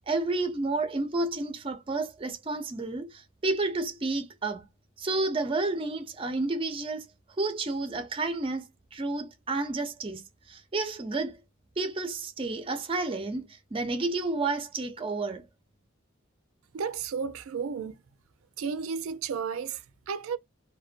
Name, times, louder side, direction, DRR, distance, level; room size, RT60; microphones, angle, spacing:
voice 1, 0.1-4.7 5.0-7.1 7.4-10.2 10.5-11.4 11.8-15.5, right 3 dB, 25° right, 0.4 m, -31 dB
voice 2, 16.7-18.0 18.6-20.4, right 6 dB, 85° right, 0.4 m, -33 dB
2.4 x 2.2 x 2.4 m
head